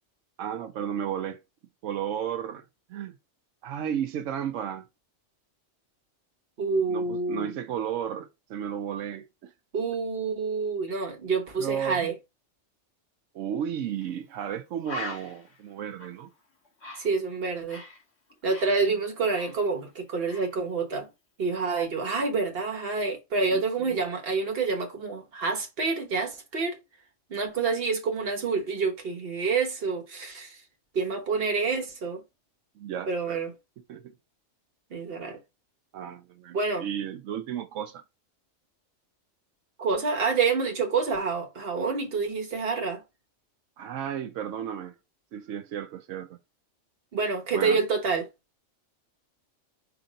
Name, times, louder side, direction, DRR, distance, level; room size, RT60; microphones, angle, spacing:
voice 1, 0.4-1.4 1.8-2.6 2.9-3.2 3.6-4.8 6.9-9.5 11.6-12.2 13.3-16.3 18.7-19.0 23.5-24.0 32.8-33.4 33.9-34.0 35.9-38.0 43.8-44.9 45.3-46.4 47.5-47.8, right 9 dB, 90° right, 1.0 m, -33 dB
voice 2, 6.6-7.5 9.7-12.1 17.0-17.8 18.4-21.1 21.4-26.8 27.3-30.5 30.9-32.2 33.1-33.5 34.9-35.4 36.5-36.8 39.8-43.0 47.1-48.3, right 4 dB, 55° right, 1.2 m, -28 dB
Bird, 14.0-14.1 14.5-14.6 14.8-18.0 18.3-20.0 20.3-20.6, left 1 dB, 60° left, 1.9 m, -41 dB
5.0 x 2.6 x 3.9 m
omnidirectional pair, 1.3 m